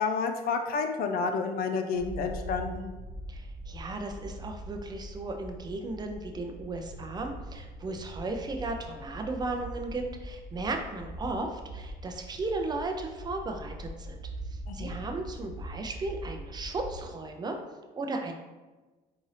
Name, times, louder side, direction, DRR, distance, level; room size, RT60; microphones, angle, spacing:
voice 1, 0.0-2.9 14.7-14.9, left 5 dB, 60° left, 5 dB, 0.5 m, -30 dB
sound 1, 1.9-17.0, right 1 dB, 20° left, 1.1 m, -42 dB
voice 2, 3.3-17.6 18.0-18.3, right 2 dB, 25° right, 4 dB, 0.5 m, -35 dB
3.9 x 2.6 x 3.2 m, 1.2 s
cardioid pair, 110°, 17 cm